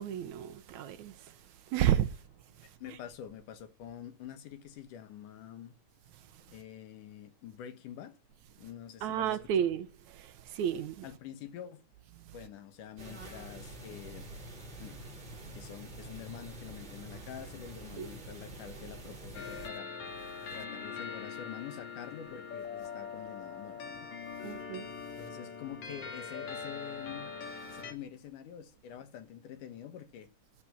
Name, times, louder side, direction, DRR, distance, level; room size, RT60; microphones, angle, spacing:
voice 1, 0.0-1.4 1.7-2.2 2.9-3.0 9.0-11.1 12.2-12.4 18.0-18.1 24.4-24.9, right 10 dB, 70° right, 2.2 m, -32 dB
voice 2, 2.6-5.7 6.5-8.2 8.6-9.7 11.0-11.8 12.3-15.1 15.3-19.9 20.5-24.1 24.5-24.7 25.2-27.3 27.7-30.3, left 9 dB, 85° left, 2.8 m, -47 dB
sound 1, 13.0-19.7, right 1 dB, 40° right, 3.5 m, -46 dB
sound 2, 19.3-27.9, left 5 dB, 65° left, 3.1 m, -42 dB
12.0 x 7.6 x 7.4 m
omnidirectional pair, 3.6 m